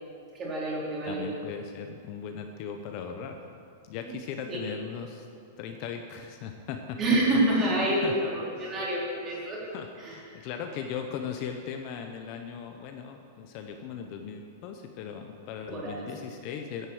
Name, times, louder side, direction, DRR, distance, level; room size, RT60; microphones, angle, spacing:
voice 1, 0.3-1.3 4.0-4.1 4.5-4.6 7.0-9.6 10.0-10.4 15.7-16.0, right 1 dB, 20° right, -6 dB, 3.4 m, -28 dB
voice 2, 1.1-3.4 3.8-5.3 5.6-7.0 7.5-7.7 8.0-8.1 8.5-8.8 9.3-9.5 9.7-16.9, left 7 dB, 35° left, 5 dB, 0.7 m, -38 dB
11.0 x 8.0 x 7.8 m, 2.4 s
supercardioid pair, 165°, 0 cm